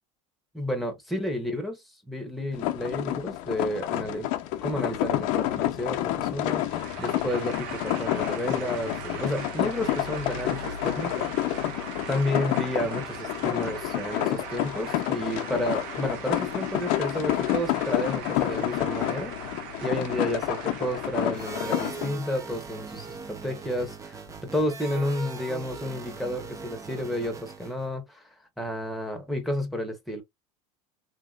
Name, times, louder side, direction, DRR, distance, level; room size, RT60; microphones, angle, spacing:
voice 1, 0.5-4.3 4.6-11.7 12.1-28.2 28.6-30.2, left 1 dB, ahead, 1.2 m, -31 dB
sound 1, 2.5-22.1, left 13 dB, 60° left, 0.7 m, -29 dB
sound 2, 6.2-22.2, right 7 dB, 65° right, 1.2 m, -41 dB
sound 3, 21.3-27.9, right 4 dB, 20° right, 0.8 m, -40 dB
3.1 x 2.9 x 2.4 m
supercardioid pair, 125°, 16 cm